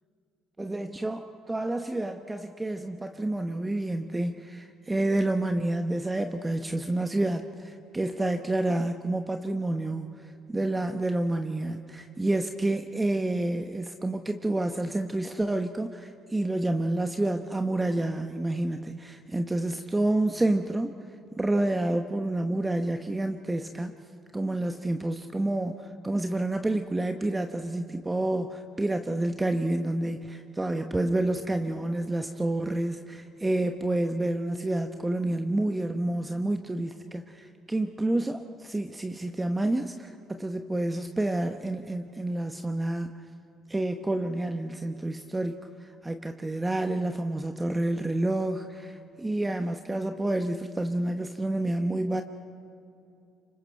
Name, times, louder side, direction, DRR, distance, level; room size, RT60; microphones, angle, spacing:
voice 1, 0.6-21.0 21.4-23.9 24.3-43.2 43.7-52.2, right 1 dB, 15° right, 6 dB, 1.0 m, -29 dB
28.0 x 25.5 x 4.6 m, 2.8 s
hypercardioid pair, 60°, 0 cm